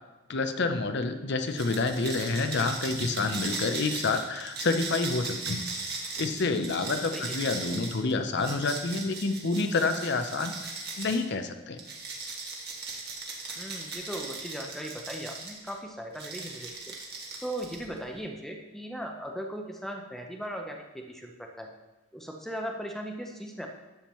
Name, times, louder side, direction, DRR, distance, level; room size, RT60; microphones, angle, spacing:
voice 1, 0.3-5.7 6.2-10.5 11.0-11.8, left 3 dB, 50° left, 7 dB, 0.6 m, -28 dB
sound 1, 1.5-11.2 11.8-15.7 16.1-18.0, right 3 dB, 45° right, 1.5 m, -38 dB
voice 2, 13.6-16.9 17.4-21.7 22.1-23.7, equal, ahead, 2 dB, 0.6 m, -38 dB
11.5 x 7.1 x 3.1 m, 1.1 s
head